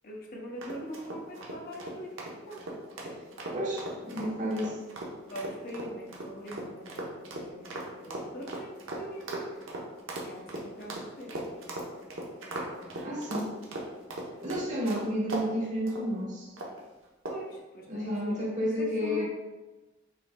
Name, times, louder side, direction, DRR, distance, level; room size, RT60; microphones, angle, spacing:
voice 1, 0.1-1.2 1.5-2.1 2.5-2.6 5.3-6.7 7.0-7.1 7.4-7.6 8.1-8.7 9.0-9.5 10.3-10.4 10.8-10.9 11.2-11.3 17.3-17.5 17.9-18.0 19.0-19.2, equal, 45° left, -1 dB, 0.7 m, -41 dB
sound 1, 0.6-15.5 15.9-16.1 16.6-16.8 17.2-17.5, right 1 dB, 75° right, 0.8 m, -38 dB
voice 2, 3.5-4.8 13.0-13.5 14.4-16.5 17.9-19.2, equal, 40° right, -4 dB, 1.2 m, -31 dB
5.5 x 3.8 x 2.2 m, 1.1 s
head